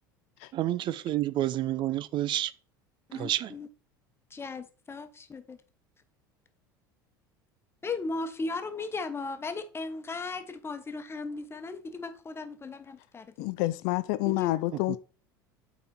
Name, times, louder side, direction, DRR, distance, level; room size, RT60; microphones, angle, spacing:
voice 1, 0.5-2.5 3.1-3.5, right 13 dB, 45° right, 0.5 m, -29 dB
voice 2, 3.1-3.7 4.3-5.6 7.8-13.5 14.2-14.5, left 3 dB, 20° left, 1.2 m, -37 dB
voice 3, 13.4-15.0, left 19 dB, 65° left, 0.4 m, -28 dB
8.2 x 4.2 x 4.2 m
hypercardioid pair, 75°, 11 cm